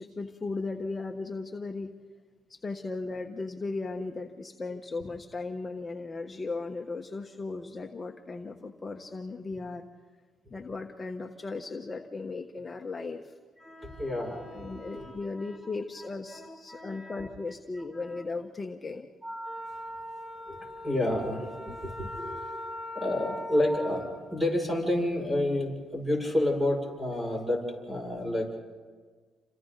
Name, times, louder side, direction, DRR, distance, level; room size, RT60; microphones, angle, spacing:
voice 1, 0.0-1.9 2.5-9.9 10.5-13.4 13.8-14.0 14.5-19.1 21.7-21.9, left 3 dB, 25° left, 3 dB, 1.3 m, -37 dB
voice 2, 13.6-15.7 16.3-17.2 18.0-18.1 19.2-28.6, left 1 dB, 15° right, 1 dB, 7.0 m, -31 dB
29.5 x 26.5 x 4.1 m, 1.5 s
cardioid pair, 90°, 0 cm